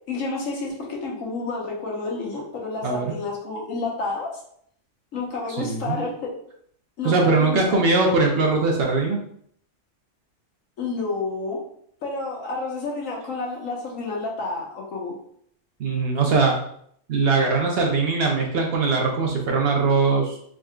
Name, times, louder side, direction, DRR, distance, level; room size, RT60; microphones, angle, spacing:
voice 1, 0.1-4.3 5.1-6.3 7.0-7.8 10.8-11.6 12.0-15.1, left 3 dB, 90° left, -2 dB, 1.3 m, -30 dB
voice 2, 2.8-3.2 5.6-6.0 7.0-9.2 15.8-16.6 17.1-20.4, right 3 dB, 60° right, 1 dB, 0.8 m, -21 dB
3.6 x 3.6 x 2.2 m, 0.65 s
omnidirectional pair, 1.3 m